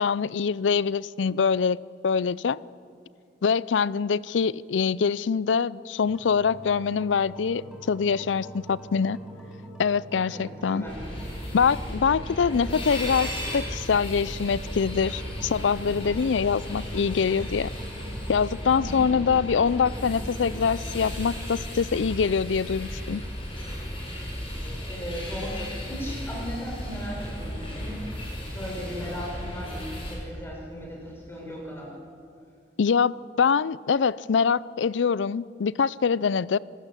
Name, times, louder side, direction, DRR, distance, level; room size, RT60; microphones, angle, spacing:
voice 1, 0.0-1.8 2.0-2.6 3.4-9.2 9.8-10.8 11.5-17.7 18.3-23.2 32.8-36.6, left 6 dB, 90° left, 21 dB, 0.5 m, -24 dB
sound 1, 6.0-21.4, right 1 dB, 5° right, 5.0 m, -44 dB
voice 2, 10.3-11.0 18.7-19.1 24.9-32.0, equal, 15° left, -2 dB, 5.9 m, -37 dB
sound 2, 10.9-30.2, equal, 30° left, 6.2 m, -35 dB
26.5 x 16.5 x 7.6 m, 2.4 s
head